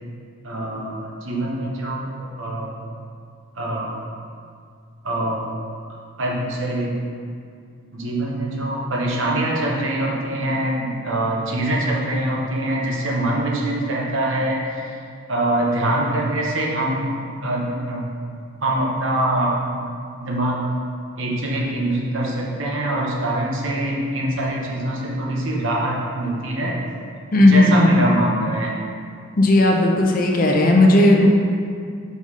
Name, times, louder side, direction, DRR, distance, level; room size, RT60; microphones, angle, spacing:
voice 1, 0.4-2.7 3.5-3.9 5.0-5.4 5.9-7.0 7.9-15.0 15.3-18.1 18.6-19.9 20.2-20.6 21.2-26.8 27.4-28.7, right 1 dB, 65° right, -3 dB, 1.0 m, -24 dB
voice 2, 27.3-28.0 29.4-31.3, left 1 dB, 40° left, 1 dB, 0.6 m, -14 dB
5.2 x 4.1 x 4.8 m, 2.2 s
head